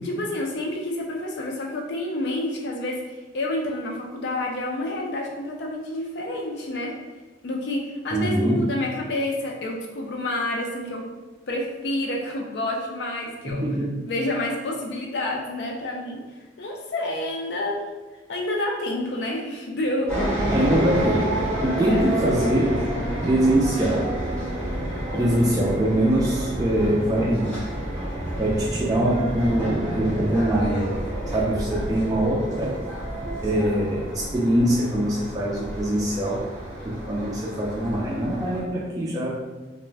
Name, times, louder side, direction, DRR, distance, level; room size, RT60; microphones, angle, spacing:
voice 1, 0.0-6.9 7.4-11.1 11.5-13.7 14.1-16.2 16.6-17.8 18.3-20.1 21.8-22.1, left 1 dB, 65° left, 0 dB, 0.4 m, -29 dB
voice 2, 8.1-8.7 13.5-13.9 20.5-21.3 21.6-22.9 23.2-24.1 25.1-27.6 28.4-30.9 31.3-32.8 33.4-36.5 36.8-39.4, right 1 dB, 20° right, -5 dB, 0.3 m, -23 dB
sound 1, 20.1-38.6, right 1 dB, 5° left, 0.7 m, -29 dB
2.4 x 2.1 x 3.2 m, 1.2 s
head